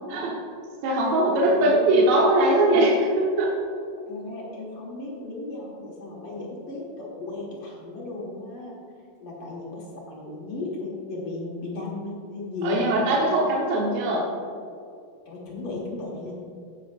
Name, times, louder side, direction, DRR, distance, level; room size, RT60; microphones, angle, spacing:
voice 1, 0.8-3.5 12.6-14.3, right 1 dB, 70° right, -4 dB, 2.7 m, -21 dB
voice 2, 1.5-1.9 4.1-8.7 9.2-13.5 15.3-16.3, left 3 dB, 50° left, -4 dB, 1.9 m, -35 dB
16.5 x 7.0 x 2.5 m, 2.4 s
omnidirectional pair, 4.5 m